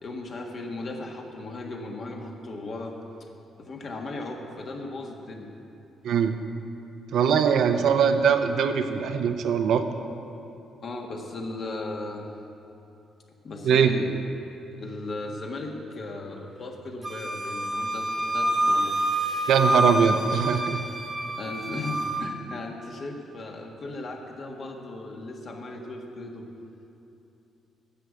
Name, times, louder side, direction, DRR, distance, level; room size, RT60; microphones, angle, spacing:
voice 1, 0.0-2.9 3.6-5.5 7.5-7.8 10.8-12.3 13.4-14.1 14.7-18.9 21.4-26.4, left 2 dB, 50° left, 1 dB, 1.6 m, -36 dB
voice 2, 6.0-6.4 7.1-9.8 13.6-13.9 19.5-20.8, right 7 dB, 75° right, 7 dB, 0.7 m, -22 dB
Wind instrument woodwind instrument, 17.0-22.3, right 1 dB, 10° right, 1.2 m, -27 dB
10.5 x 6.6 x 8.4 m, 2.9 s
cardioid pair, 90°, 0 cm